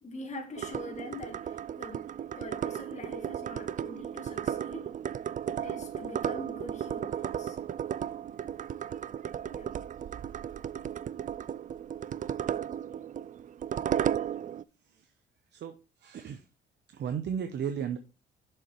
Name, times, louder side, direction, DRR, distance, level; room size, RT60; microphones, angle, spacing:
voice 1, 0.0-2.1 2.4-4.9 5.5-7.6 9.5-9.7, left 2 dB, 35° left, 1.9 m, -44 dB
sound 1, 0.5-14.6, right 9 dB, 40° right, 0.4 m, -35 dB
voice 2, 16.0-16.4 16.9-18.0, right 8 dB, 60° right, 0.8 m, -34 dB
7.1 x 5.6 x 4.3 m
cardioid pair, 90°, 20 cm